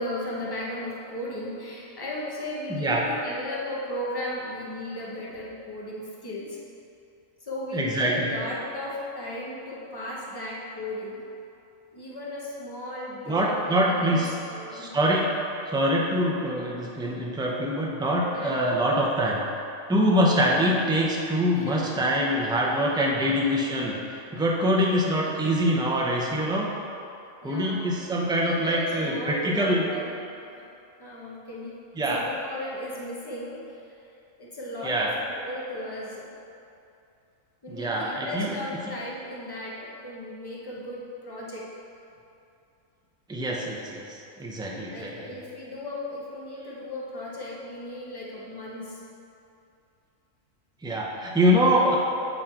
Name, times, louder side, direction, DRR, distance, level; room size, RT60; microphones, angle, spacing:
voice 1, 0.0-6.6 7.4-11.2 11.9-15.0 18.3-18.8 21.6-21.9 23.1-23.5 27.4-27.9 28.4-30.1 30.5-30.6 31.0-31.8 32.1-33.8 34.4-36.3 37.6-41.7 44.9-49.0, left 1 dB, 20° left, -5 dB, 0.9 m, -36 dB
voice 2, 2.7-3.1 7.7-8.3 13.3-14.3 14.7-15.3 15.7-19.4 19.9-26.7 27.4-29.9 32.0-32.2 34.8-35.1 37.7-38.6 43.3-44.1 44.4-45.3 50.8-52.0, equal, 5° right, -3 dB, 0.4 m, -24 dB
8.3 x 3.9 x 4.4 m, 2.7 s
omnidirectional pair, 1.4 m